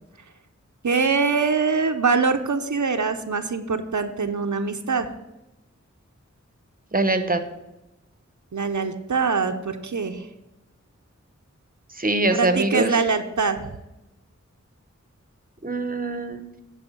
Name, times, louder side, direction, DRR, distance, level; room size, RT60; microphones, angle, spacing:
voice 1, 0.8-5.1 8.5-10.3 12.3-13.7, right 4 dB, 75° right, 7 dB, 0.6 m, -23 dB
voice 2, 6.9-7.4 11.9-13.0 15.6-16.4, right 2 dB, 30° right, 9 dB, 0.8 m, -23 dB
9.8 x 4.8 x 6.0 m, 0.96 s
wide cardioid pair, 40°, 30 cm